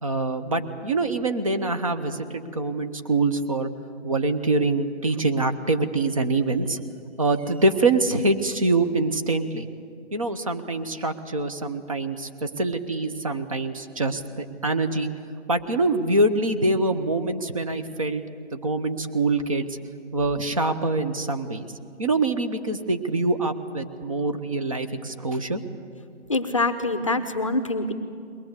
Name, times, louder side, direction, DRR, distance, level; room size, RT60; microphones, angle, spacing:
voice 1, 0.0-3.7 4.0-6.8 7.2-9.7 10.1-15.1 15.5-18.2 18.5-19.7 20.1-21.7 22.0-25.6, right 2 dB, 30° right, 8 dB, 0.9 m, -25 dB
voice 2, 26.3-27.9, left 2 dB, 30° left, 9 dB, 0.7 m, -24 dB
22.0 x 19.5 x 8.0 m, 2.3 s
figure-of-eight pair, 165°, 35 cm